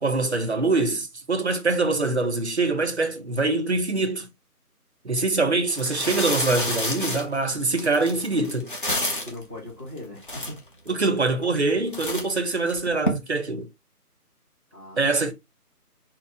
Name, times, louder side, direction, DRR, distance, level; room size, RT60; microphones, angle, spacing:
voice 1, 0.0-4.3 5.0-8.7 10.9-13.7 15.0-15.3, right 3 dB, 45° right, 0.6 m, -24 dB
sound 1, 5.1-5.2 5.7-9.4 10.0-10.1 10.2-10.9 11.4-11.7 11.9-13.1, left 1 dB, 35° left, 0.8 m, -29 dB
voice 2, 9.2-10.7 14.7-15.3, left 1 dB, 10° left, 1.1 m, -40 dB
4.1 x 2.0 x 3.5 m
figure-of-eight pair, 170°, 46 cm